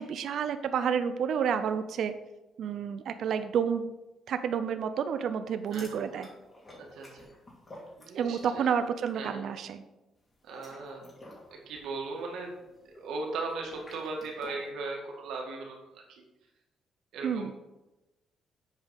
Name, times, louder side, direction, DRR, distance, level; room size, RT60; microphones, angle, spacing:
voice 1, 0.0-2.1 2.6-3.9 4.3-6.3 8.2-9.8 17.2-17.5, right 7 dB, 70° right, 10 dB, 0.5 m, -30 dB
sound 1, 5.6-8.6 8.8-9.2 10.3-14.7, left 1 dB, 30° left, 2.8 m, -51 dB
voice 2, 6.8-7.3 8.0-8.7 9.1-9.4 10.4-11.0 11.5-12.5 12.9-16.2 17.1-17.5, right 3 dB, 85° right, 0 dB, 2.0 m, -38 dB
7.5 x 5.0 x 5.4 m, 1.0 s
cardioid pair, 90°, 0 cm